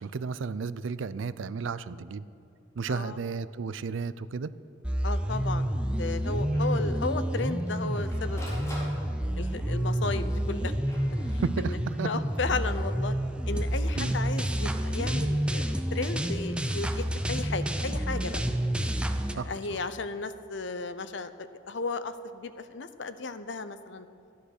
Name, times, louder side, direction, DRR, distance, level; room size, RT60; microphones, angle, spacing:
voice 1, 0.0-2.3 2.8-4.5 11.4-12.1 14.0-14.2 19.3-19.8, right 5 dB, 85° right, 15 dB, 0.5 m, -33 dB
voice 2, 2.9-3.2 5.0-5.7 6.0-8.9 9.4-10.7 11.3-11.8 12.0-13.1 13.5-18.4 19.3-24.1, left 3 dB, 70° left, 11 dB, 0.7 m, -34 dB
sound 1, 4.8-19.3, equal, 5° right, 0.6 m, -29 dB
Printer, 4.9-5.0 5.3-5.4 5.7-5.8 6.5-6.8 7.4-9.5 10.3-11.8 13.5-13.9, left 1 dB, 15° left, 3.7 m, -45 dB
14.0 x 10.5 x 6.5 m, 2.4 s
head